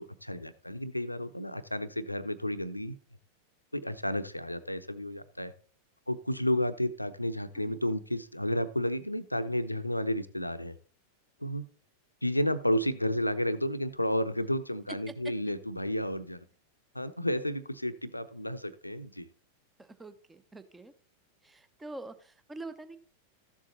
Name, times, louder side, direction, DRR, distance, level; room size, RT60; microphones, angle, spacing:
voice 1, 0.0-3.0 3.7-5.5 6.1-10.8 11.4-11.6 12.2-16.4 16.9-19.3, left 1 dB, 85° left, 12 dB, 0.8 m, -32 dB
voice 2, 19.8-20.9 21.4-23.0, right 2 dB, 10° right, 11 dB, 0.9 m, -45 dB
14.0 x 7.3 x 4.1 m, 0.42 s
figure-of-eight pair, 90°, 0 cm